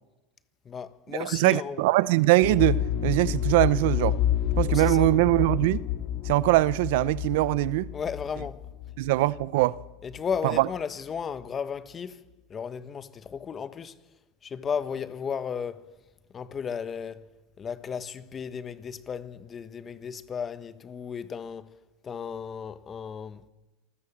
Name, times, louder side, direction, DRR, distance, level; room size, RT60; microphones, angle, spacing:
voice 1, 0.6-1.8 4.7-5.1 7.9-8.7 10.0-14.0 14.4-15.9 16.3-17.3 17.6-21.7 22.0-23.4, left 7 dB, 20° left, 1.4 m, -34 dB
voice 2, 1.2-4.2 4.6-5.8 6.2-7.9 9.0-9.8 10.4-10.7, right 18 dB, 65° right, 0.7 m, -22 dB
sound 1, 2.4-10.2 10.5-10.6, left 11 dB, 50° left, 2.5 m, -29 dB
27.0 x 20.5 x 7.4 m
supercardioid pair, 135°, 0 cm